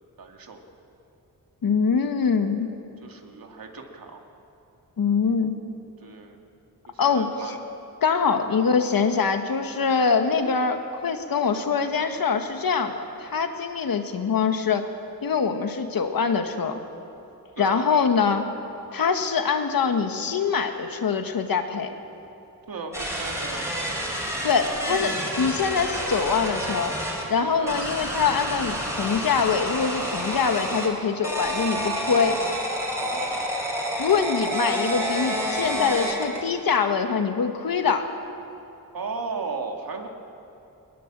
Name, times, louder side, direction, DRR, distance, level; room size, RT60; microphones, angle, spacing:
voice 1, 0.2-0.6 3.0-4.2 6.0-6.4 6.9-7.6 8.2-8.5 17.6-17.9 22.7-23.9 27.6-27.8 33.0-33.5 38.9-40.1, right 4 dB, 70° right, 2 dB, 2.3 m, -36 dB
voice 2, 1.6-2.7 5.0-5.6 7.0-7.3 8.0-14.9 15.2-16.8 17.6-18.5 18.9-21.9 24.4-26.9 27.3-32.4 34.0-38.1, left 5 dB, 70° left, 6 dB, 1.6 m, -24 dB
sound 1, 22.9-27.2 27.7-30.9 31.2-36.4, equal, 10° right, 4.4 m, -29 dB
22.0 x 20.0 x 7.6 m, 2.8 s
wide cardioid pair, 145°, 36 cm